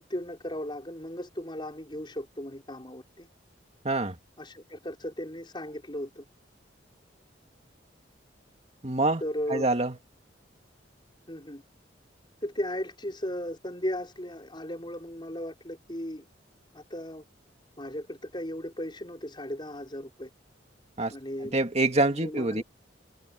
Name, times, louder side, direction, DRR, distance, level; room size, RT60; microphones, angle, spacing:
voice 1, 0.0-3.3 4.4-6.2 9.2-9.7 11.3-11.6 12.4-16.2 16.7-17.2 17.8-20.3 21.1-21.6 22.2-22.6, equal, 25° left, 5.7 m, -36 dB
voice 2, 3.8-4.2 8.8-9.2 9.5-10.0 21.0-21.1 21.5-22.6, right 2 dB, 35° right, 2.1 m, -25 dB
head